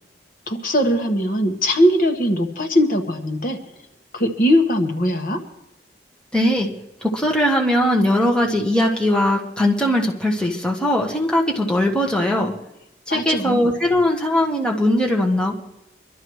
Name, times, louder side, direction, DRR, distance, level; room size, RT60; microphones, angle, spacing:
voice 1, 0.5-3.6 4.1-5.4 13.1-13.7, equal, 50° left, 4 dB, 1.4 m, -20 dB
voice 2, 6.3-6.7 7.0-12.5 13.1-15.6, left 1 dB, 5° left, -1 dB, 1.3 m, -20 dB
24.5 x 12.5 x 3.2 m, 0.87 s
head